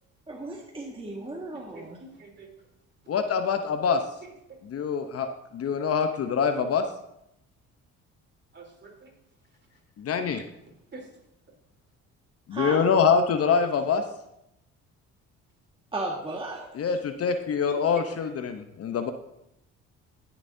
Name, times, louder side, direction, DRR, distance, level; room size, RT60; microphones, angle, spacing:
voice 1, 0.3-2.0 12.5-12.8 15.9-16.8, right 2 dB, 15° right, -2 dB, 1.7 m, -35 dB
voice 2, 1.5-2.5 4.2-4.9 8.5-9.1 10.9-11.1 12.8-13.1 13.4-13.7 17.4-18.4, right 3 dB, 35° right, 0 dB, 3.4 m, -46 dB
voice 3, 3.1-4.0 4.7-5.3 5.5-6.8 10.0-10.4 12.5-14.0 16.7-19.1, left 6 dB, 50° left, 8 dB, 0.8 m, -25 dB
20.5 x 7.2 x 2.7 m, 0.83 s
supercardioid pair, 70°, 31 cm